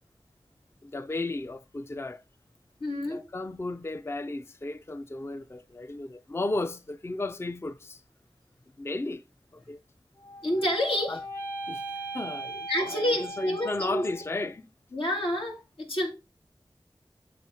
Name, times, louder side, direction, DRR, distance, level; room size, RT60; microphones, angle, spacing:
voice 1, 0.8-2.2 3.0-8.0 8.8-9.2 9.5-9.8 11.1-11.2 11.7-14.6, left 2 dB, 30° left, 0.4 m, -34 dB
voice 2, 2.8-3.2 10.4-11.2 12.7-14.0 14.9-16.1, equal, 85° left, 2.1 m, -28 dB
sound 1, 10.2-14.5, right 2 dB, 50° left, 2.6 m, -39 dB
7.6 x 3.7 x 5.4 m
wide cardioid pair, 70°, 9 cm